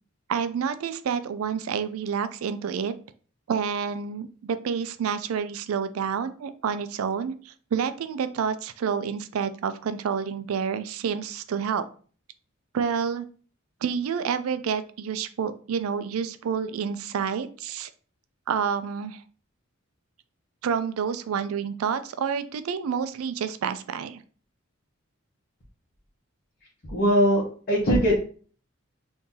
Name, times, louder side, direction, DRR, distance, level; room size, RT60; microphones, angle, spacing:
voice 1, 0.3-2.9 3.5-11.8 12.7-13.3 13.8-17.9 18.5-19.2 20.6-24.2, right 6 dB, 80° right, 11 dB, 0.4 m, -29 dB
voice 2, 26.8-28.2, equal, 45° left, -6 dB, 0.9 m, -21 dB
3.7 x 2.7 x 2.7 m, 0.41 s
head